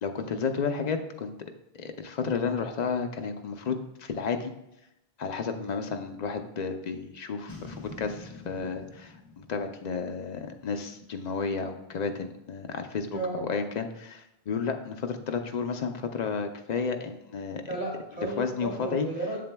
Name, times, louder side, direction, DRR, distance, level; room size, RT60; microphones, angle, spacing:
voice 1, 0.0-1.3 1.7-4.5 5.2-17.6 18.4-19.1, left 5 dB, 50° left, 6 dB, 0.6 m, -32 dB
Boom, 7.5-10.8, left 2 dB, 20° left, 1.1 m, -46 dB
voice 2, 13.1-13.4 17.7-19.4, right 2 dB, 10° right, -5 dB, 2.4 m, -33 dB
7.7 x 7.4 x 2.2 m, 0.86 s
omnidirectional pair, 1.1 m